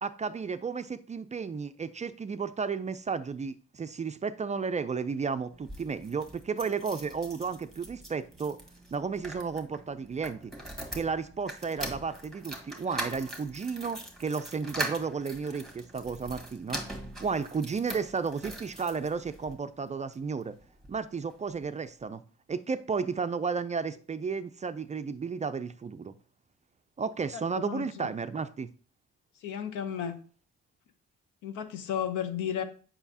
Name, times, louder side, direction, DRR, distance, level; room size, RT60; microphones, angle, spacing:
voice 1, 0.0-8.6 8.9-10.5 10.9-16.8 17.2-20.5 20.9-22.2 22.5-26.1 27.0-28.7, right 5 dB, 25° right, 0.3 m, -33 dB
sound 1, 5.5-19.5 20.1-21.0 21.3-21.4 21.6-21.7, right 1 dB, ahead, 1.3 m, -42 dB
voice 2, 27.3-28.1 29.3-30.2 31.4-32.6, left 9 dB, 85° left, 0.8 m, -34 dB
7.0 x 5.5 x 2.7 m
cardioid pair, 90°, 30 cm